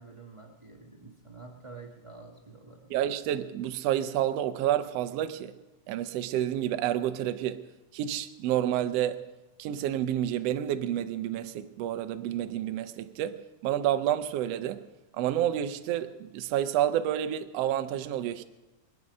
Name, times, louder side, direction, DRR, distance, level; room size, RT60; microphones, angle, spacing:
voice 1, 0.0-3.0, right 3 dB, 40° right, 0.4 m, -48 dB
voice 2, 2.9-5.5 5.9-7.6 7.9-9.2 9.6-14.8 15.2-18.4, right 11 dB, 75° right, 1.6 m, -29 dB
24.0 x 9.5 x 5.4 m
omnidirectional pair, 3.5 m